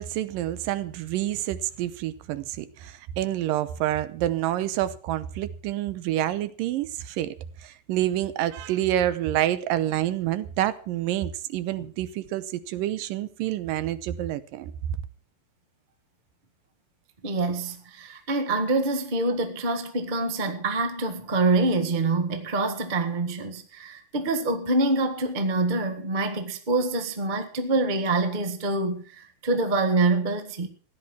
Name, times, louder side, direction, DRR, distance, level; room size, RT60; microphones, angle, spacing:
voice 1, 0.0-7.3 7.6-14.7, right 13 dB, 85° right, 2.5 m, -28 dB
voice 2, 17.2-30.7, right 2 dB, 50° right, 0.5 m, -26 dB
15.5 x 10.5 x 6.1 m
omnidirectional pair, 3.9 m